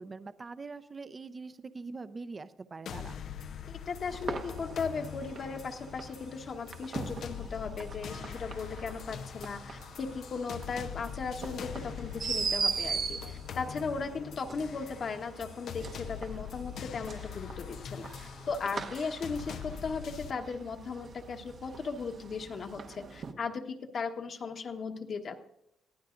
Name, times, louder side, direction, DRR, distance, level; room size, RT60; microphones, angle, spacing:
voice 1, 0.0-3.2, right 4 dB, 30° right, 12 dB, 0.6 m, -43 dB
sound 1, 2.9-20.3, left 8 dB, 70° left, 0.5 m, -43 dB
voice 2, 3.7-25.4, left 5 dB, 50° left, 4 dB, 1.2 m, -37 dB
sound 2, 4.1-23.3, right 5 dB, 55° right, 1.0 m, -41 dB
22.0 x 15.0 x 2.6 m, 0.80 s
cardioid pair, 90°, 0 cm